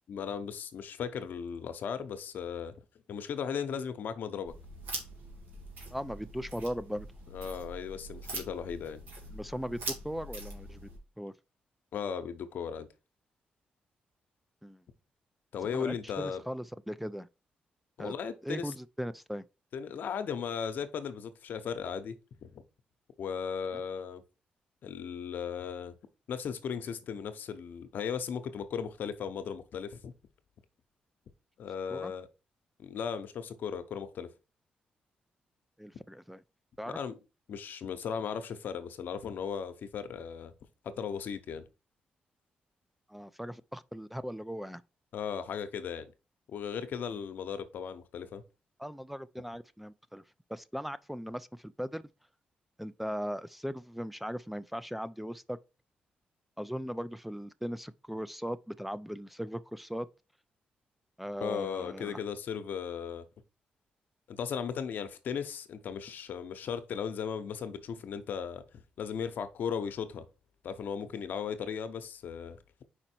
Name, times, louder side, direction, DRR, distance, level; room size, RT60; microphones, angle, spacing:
voice 1, 0.1-2.8 3.1-4.5 7.3-9.0 11.9-12.9 15.5-16.4 18.0-18.7 19.7-22.2 22.4-22.5 23.2-24.2 24.8-25.9 26.3-30.1 31.6-32.3 32.8-34.3 36.9-37.2 37.5-40.5 40.8-41.6 45.1-46.1 46.5-48.4 61.4-63.3 64.3-70.2 70.6-72.6, left 7 dB, 75° left, 0.8 m, -36 dB
sound 1, 4.5-11.0, right 2 dB, 75° right, 2.1 m, -43 dB
voice 2, 5.9-7.1 9.3-10.8 11.2-11.3 14.6-14.8 15.7-17.3 18.0-18.1 18.4-19.4 31.9-32.1 35.8-36.4 36.8-37.0 43.1-44.8 48.8-50.2 50.5-52.0 52.8-55.6 56.6-60.1 61.2-62.2, equal, 5° right, 0.4 m, -38 dB
5.0 x 4.4 x 4.4 m
cardioid pair, 75°, 3 cm